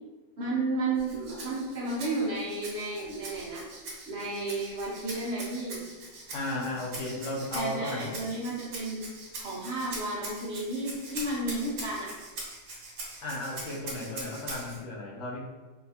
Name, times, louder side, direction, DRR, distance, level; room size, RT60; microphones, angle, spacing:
voice 1, 0.4-3.7 4.1-5.8 7.5-9.0 9.4-12.1, right 2 dB, 55° right, -5 dB, 0.9 m, -32 dB
Rattle (instrument), 1.0-14.8, right 2 dB, 85° right, 1.4 m, -42 dB
voice 2, 6.3-8.1 13.2-15.4, left 2 dB, 70° left, -2 dB, 0.9 m, -34 dB
4.0 x 2.3 x 2.7 m, 1.2 s
omnidirectional pair, 1.5 m